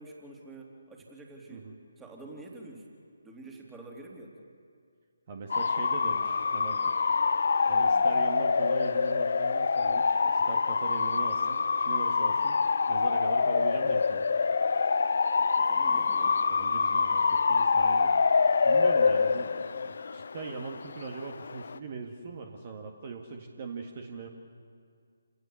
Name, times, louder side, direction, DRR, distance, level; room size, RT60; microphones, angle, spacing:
voice 1, 0.0-1.6 2.0-2.9 3.2-4.4 15.6-16.5, right 2 dB, 5° right, -1 dB, 2.9 m, -47 dB
voice 2, 5.3-12.6 12.9-14.3 16.5-18.1 18.6-19.5 19.8-24.3, right 4 dB, 35° right, 3 dB, 1.8 m, -40 dB
Bark / Motor vehicle (road) / Siren, 5.5-21.8, left 5 dB, 50° left, 0.7 m, -26 dB
28.5 x 18.0 x 7.1 m, 2.2 s
figure-of-eight pair, 145°, 0 cm